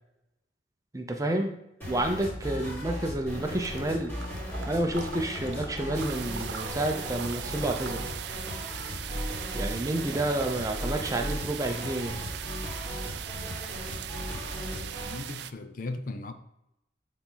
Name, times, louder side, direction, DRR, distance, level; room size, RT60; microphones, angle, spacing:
voice 1, 0.9-1.5 1.9-4.1 4.7-8.1 9.5-12.2, right 1 dB, 20° right, 4 dB, 0.6 m, -30 dB
sound 1, 1.8-15.2, equal, 10° left, 2.3 m, -37 dB
Water / Liquid, 3.6-8.5, right 3 dB, 80° right, 0.9 m, -43 dB
sound 2, 5.9-15.5, right 11 dB, 65° right, 0.3 m, -39 dB
voice 2, 14.3-16.3, left 2 dB, 45° left, 8 dB, 0.5 m, -39 dB
8.5 x 4.1 x 3.9 m, 0.85 s
head